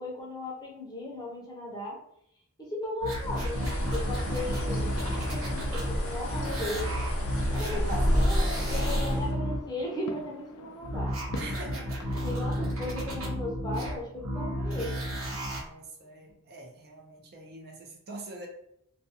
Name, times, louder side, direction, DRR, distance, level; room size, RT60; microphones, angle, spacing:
voice 1, 0.0-2.0 2.6-4.9 5.3-6.9 7.5-11.1 12.2-15.0, left 1 dB, 20° left, -2 dB, 0.6 m, -36 dB
sound 1, 3.0-6.0 6.3-9.6 10.8-15.6 16.3-16.4, equal, 75° right, 0.9 m, -33 dB
Bird, 3.1-9.3, equal, 70° left, 0.9 m, -30 dB
sound 2, 4.6-12.8, left 3 dB, 90° left, 0.4 m, -46 dB
voice 2, 7.7-8.4 11.3-12.0 15.5-18.5, right 2 dB, 50° right, 1 dB, 0.5 m, -43 dB
2.5 x 2.2 x 2.7 m, 0.74 s
head